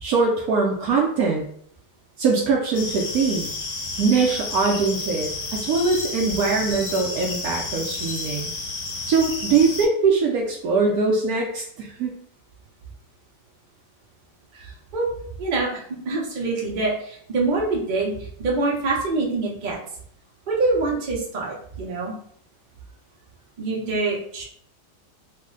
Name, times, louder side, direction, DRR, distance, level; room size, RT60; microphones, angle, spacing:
voice 1, 0.0-1.4 2.2-3.5 4.0-8.5 9.0-12.1, right 4 dB, 70° right, 0 dB, 0.9 m, -22 dB
sound 1, 2.7-9.9, left 3 dB, 70° left, 1.3 m, -31 dB
voice 2, 14.5-15.1 15.4-19.8 20.5-22.2 23.6-24.4, right 3 dB, 55° right, -3 dB, 0.5 m, -25 dB
3.1 x 2.1 x 3.6 m, 0.62 s
omnidirectional pair, 1.9 m